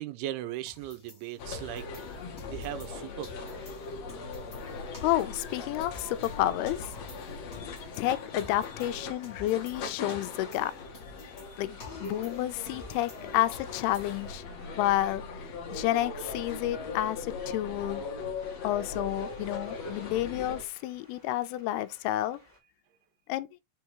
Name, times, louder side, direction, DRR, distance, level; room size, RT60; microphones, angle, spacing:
voice 1, 0.0-1.9 2.5-3.7, right 13 dB, 85° right, 2.8 m, -38 dB
sound 1, 0.7-3.0 3.2-6.4 6.6-9.8 10.1-13.2 13.5-14.4, left 3 dB, 35° left, 1.1 m, -50 dB
sound 2, 1.4-20.6, left 4 dB, 60° left, 1.9 m, -40 dB
voice 2, 5.0-6.9 8.0-10.7 11.6-14.4 14.8-15.2 15.7-18.1 18.6-22.4 23.3-23.5, left 14 dB, 85° left, 2.6 m, -30 dB
sound 3, 11.3-22.6, left 1 dB, 15° left, 1.9 m, -58 dB
6.2 x 3.5 x 4.6 m
omnidirectional pair, 4.5 m